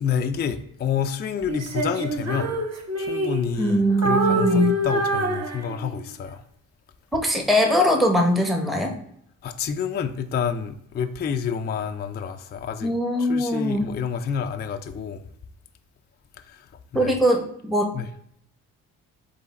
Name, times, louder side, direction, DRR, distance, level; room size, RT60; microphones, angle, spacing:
voice 1, 0.0-2.7 3.0-6.4 9.4-12.9 13.2-15.2 16.4-17.1 17.9-18.1, left 7 dB, 30° left, 7 dB, 0.3 m, -29 dB
Female singing, 1.5-3.7 4.0-6.1, right 1 dB, 45° right, 1.0 m, -26 dB
voice 2, 3.6-4.8 7.1-8.9 12.8-13.9 16.9-17.9, equal, ahead, 2 dB, 0.7 m, -21 dB
3.8 x 3.3 x 4.1 m, 0.72 s
supercardioid pair, 65°, 37 cm